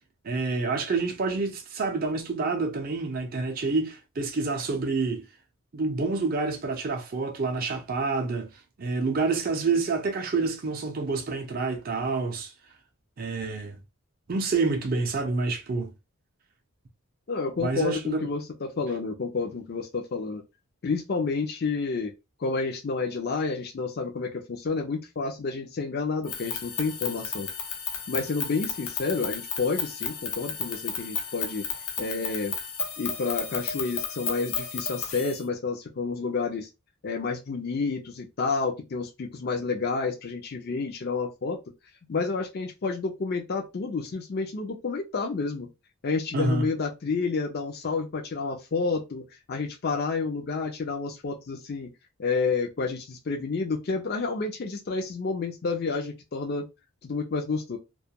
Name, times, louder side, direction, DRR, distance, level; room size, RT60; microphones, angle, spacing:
voice 1, 0.2-5.3 5.7-8.5 8.8-12.5 13.2-13.8 14.3-15.9 17.6-18.3 46.3-46.7, right 3 dB, 40° right, 0.5 m, -28 dB
voice 2, 17.3-20.4 20.8-22.1 22.4-27.5 28.1-31.7 32.0-32.5 33.0-36.7 37.0-41.6 42.1-45.7 46.0-49.2 49.5-51.9 52.2-56.6 57.0-57.8, left 4 dB, 45° left, 0.4 m, -30 dB
sound 1, 26.2-35.4, left 6 dB, 85° left, 0.7 m, -33 dB
2.2 x 2.2 x 2.7 m
head